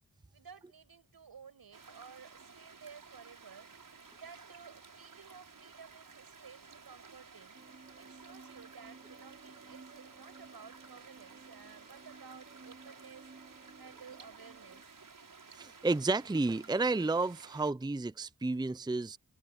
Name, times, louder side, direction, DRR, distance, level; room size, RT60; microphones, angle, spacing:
voice 1, 0.3-3.7 4.1-7.5 8.0-13.3 13.8-14.9, right 6 dB, 80° right, 6.9 m, -54 dB
sound 1, 1.7-17.7, right 5 dB, 60° right, 5.9 m, -55 dB
sound 2, 7.5-14.8, right 3 dB, 35° right, 3.3 m, -56 dB
voice 2, 15.5-19.2, right 3 dB, 10° right, 0.6 m, -31 dB
cardioid pair, 50°, 36 cm